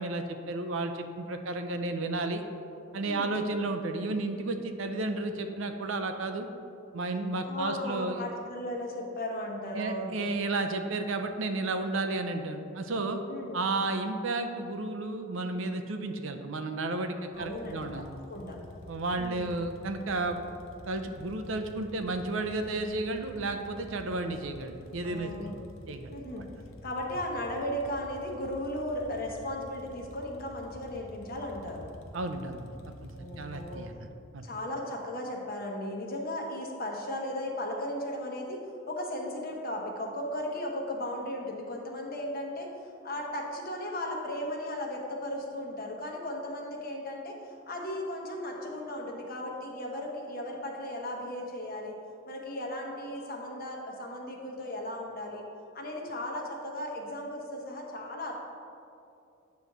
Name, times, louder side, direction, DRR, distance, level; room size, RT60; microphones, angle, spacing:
voice 1, 0.0-2.4 2.9-6.5 6.9-8.2 9.7-13.2 13.5-18.1 18.9-20.4 20.9-25.5 25.9-26.1 32.1-32.8 33.0-33.1 33.4-33.9 34.3-34.4, right 2 dB, 65° right, 7 dB, 0.6 m, -32 dB
voice 2, 3.0-3.4 7.4-10.2 13.3-13.5 17.3-18.0 18.3-18.6 19.2-19.5 25.0-25.6 26.1-26.5 26.8-31.9 33.1-33.8 34.4-38.6 38.9-42.7 43.0-52.0 52.3-55.4 55.7-58.3, left 1 dB, 45° left, 0 dB, 1.1 m, -36 dB
sound 1, 17.3-33.8, left 1 dB, 75° left, 0.7 m, -49 dB
9.2 x 3.1 x 6.6 m, 2.6 s
head